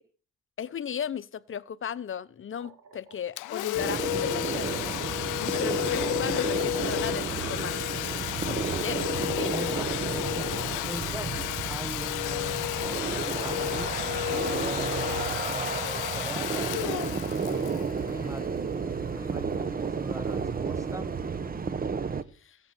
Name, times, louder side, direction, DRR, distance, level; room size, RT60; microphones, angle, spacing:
voice 1, 0.6-5.0 5.4-7.8 8.4-9.5 22.3-22.6, left 8 dB, 45° left, 0.8 m, -36 dB
sound 1, 2.4-3.5 4.6-7.5 9.1-11.9 12.2-12.3 13.4-13.5 13.9-16.8 17.6-19.3, right 5 dB, 85° right, 2.9 m, -54 dB
Domestic sounds home sounds, 3.4-18.8, left 19 dB, 85° left, 0.5 m, -32 dB
sound 2, 3.7-22.2, right 5 dB, 30° right, 1.0 m, -32 dB
voice 2, 9.4-10.6 10.9-12.6 13.1-17.8 18.1-18.5 19.1-21.1, right 1 dB, 10° right, 0.5 m, -40 dB
16.0 x 6.3 x 7.5 m
cardioid pair, 90°, 30 cm